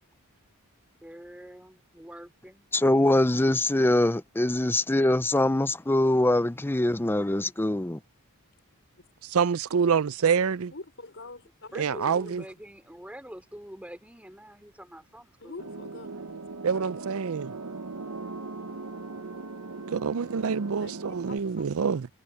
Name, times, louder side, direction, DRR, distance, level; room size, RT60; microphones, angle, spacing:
voice 1, 1.0-2.7 11.7-15.6, equal, 5° right, 3.0 m, -45 dB
voice 2, 2.7-8.0, left 1 dB, 10° left, 0.5 m, -23 dB
voice 3, 9.2-10.7 11.8-12.4 16.6-17.5 19.9-22.1, right 6 dB, 70° right, 0.5 m, -26 dB
voice 4, 10.7-12.5 15.4-16.4 16.7-17.0 20.8-21.0 21.3-22.1, left 2 dB, 55° left, 4.7 m, -45 dB
sound 1, 15.6-21.4, right 3 dB, 90° right, 1.2 m, -39 dB
head